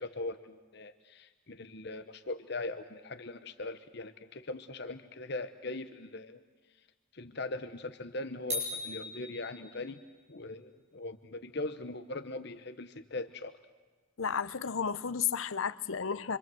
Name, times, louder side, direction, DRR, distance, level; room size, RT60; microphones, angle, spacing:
voice 1, 0.0-6.4 7.1-10.0 10.3-13.6, left 2 dB, 55° left, 1.0 m, -40 dB
sound 1, 8.5-10.1, left 2 dB, 35° right, 7.5 m, -38 dB
voice 2, 14.2-16.4, left 6 dB, 80° left, 0.8 m, -32 dB
26.5 x 25.0 x 7.9 m
head